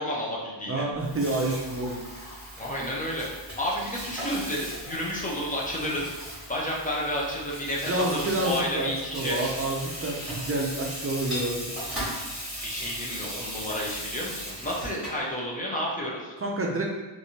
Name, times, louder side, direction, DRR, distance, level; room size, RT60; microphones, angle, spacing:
voice 1, 0.0-0.8 2.6-6.1 6.5-9.4 12.3-16.3, equal, 20° left, -4 dB, 0.6 m, -31 dB
voice 2, 0.7-2.0 5.7-6.0 7.9-11.7 16.4-16.9, right 2 dB, 30° right, -1 dB, 0.5 m, -29 dB
Water tap faucet / Sink (filling or washing), 0.9-15.3, equal, ahead, 1.5 m, -37 dB
3.2 x 2.6 x 2.7 m, 1.2 s
wide cardioid pair, 135°, 46 cm